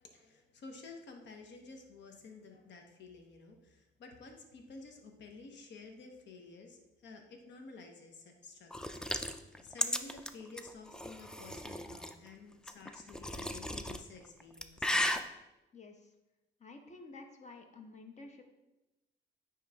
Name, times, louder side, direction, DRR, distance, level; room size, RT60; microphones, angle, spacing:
voice 1, 0.0-15.3, left 3 dB, 65° left, 4 dB, 1.0 m, -52 dB
sound 1, 8.7-12.1 12.7-14.0 14.4-15.2, left 1 dB, 5° left, 0.3 m, -35 dB
voice 2, 15.7-16.1 16.6-18.4, left 3 dB, 35° left, 4 dB, 1.0 m, -51 dB
9.3 x 3.1 x 3.5 m, 0.98 s
cardioid pair, 90°, 20 cm